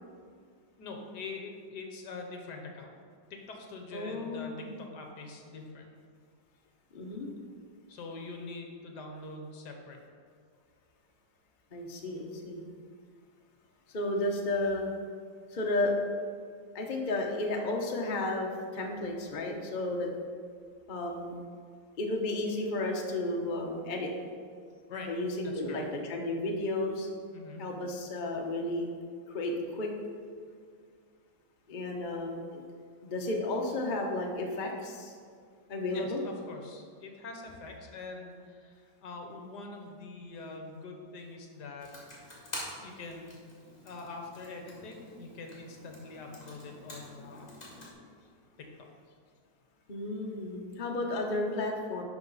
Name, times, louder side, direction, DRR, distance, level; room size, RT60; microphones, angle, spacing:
voice 1, 0.8-2.9 3.3-5.9 7.9-10.0 24.9-25.1 25.4-25.9 27.3-27.7 35.9-43.4 43.8-47.5 48.6-48.7, left 3 dB, 65° left, 2 dB, 1.5 m, -44 dB
voice 2, 3.9-4.7 6.9-7.3 11.7-12.6 13.9-14.9 15.5-16.0 16.7-20.1 20.9-21.3 22.0-24.1 25.1-27.1 27.6-28.9 29.3-29.9 31.7-32.6 33.0-35.1 35.7-36.2 49.9-52.0, left 2 dB, 40° left, 1 dB, 0.7 m, -33 dB
Computer keyboard, 41.8-47.9, left 1 dB, 20° left, 2.0 m, -47 dB
11.5 x 5.1 x 4.0 m, 2.2 s
omnidirectional pair, 2.0 m